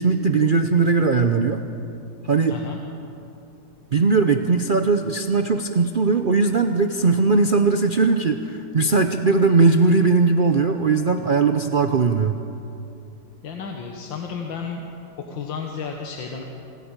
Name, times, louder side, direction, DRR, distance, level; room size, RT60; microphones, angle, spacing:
voice 1, 0.0-1.6 2.2-2.6 3.9-12.4, right 4 dB, 80° right, 6 dB, 0.4 m, -19 dB
voice 2, 2.5-2.8 13.4-14.9 15.3-16.4, left 5 dB, 85° left, 2 dB, 2.1 m, -32 dB
26.5 x 12.5 x 8.9 m, 2.7 s
omnidirectional pair, 2.0 m